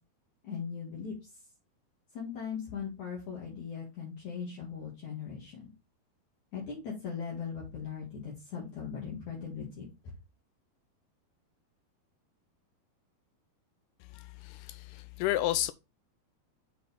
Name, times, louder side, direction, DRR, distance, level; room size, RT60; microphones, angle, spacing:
voice 1, 0.4-1.4 2.1-5.7 6.5-9.9, left 6 dB, 50° left, 3.2 m, -39 dB
voice 2, 14.1-15.7, left 14 dB, 85° left, 2.5 m, -32 dB
7.6 x 5.8 x 3.5 m
omnidirectional pair, 4.7 m